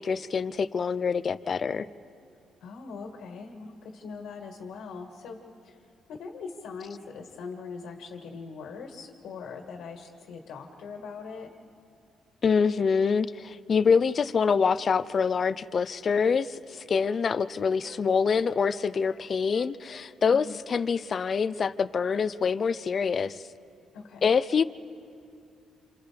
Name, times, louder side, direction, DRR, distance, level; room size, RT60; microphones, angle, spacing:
voice 1, 0.0-1.9 12.4-23.4 24.2-24.6, left 5 dB, 45° left, 15 dB, 0.6 m, -25 dB
voice 2, 2.6-5.8 6.1-11.5 20.3-20.6 23.9-24.3, left 5 dB, 80° left, 3 dB, 1.8 m, -41 dB
Wind instrument woodwind instrument, 16.2-20.9 21.1-22.2 22.5-22.7, left 1 dB, 5° right, 3.8 m, -53 dB
28.0 x 27.5 x 3.5 m, 2.5 s
cardioid pair, 90°, 0 cm